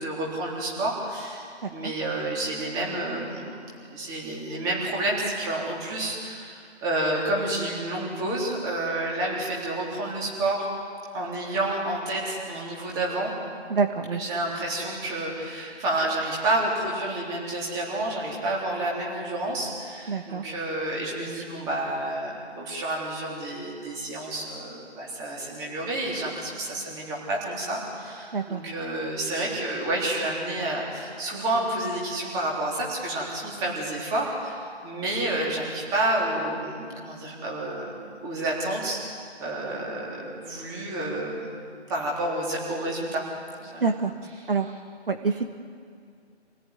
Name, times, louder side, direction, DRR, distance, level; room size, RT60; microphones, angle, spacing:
voice 1, 0.0-10.7 11.1-13.3 14.1-43.2 43.6-43.9 44.4-44.5, right 1 dB, 10° right, -4 dB, 3.6 m, -30 dB
voice 2, 13.7-14.2 20.1-20.4 28.3-28.6 43.8-44.1 44.5-44.7 45.1-45.5, right 4 dB, 55° right, 6 dB, 1.4 m, -26 dB
27.5 x 18.0 x 9.7 m, 2.2 s
figure-of-eight pair, 160°, 34 cm